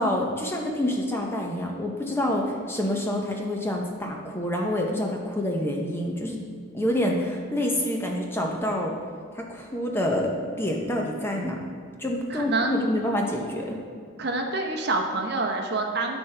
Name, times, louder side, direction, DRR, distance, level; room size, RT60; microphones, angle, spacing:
voice 1, 0.0-6.4 6.7-8.9 9.3-10.3 10.6-11.6 12.0-13.8, left 1 dB, 10° left, 0 dB, 0.6 m, -27 dB
voice 2, 12.3-12.8 14.2-16.2, right 3 dB, 50° right, 2 dB, 0.7 m, -27 dB
12.5 x 4.5 x 3.3 m, 2.2 s
head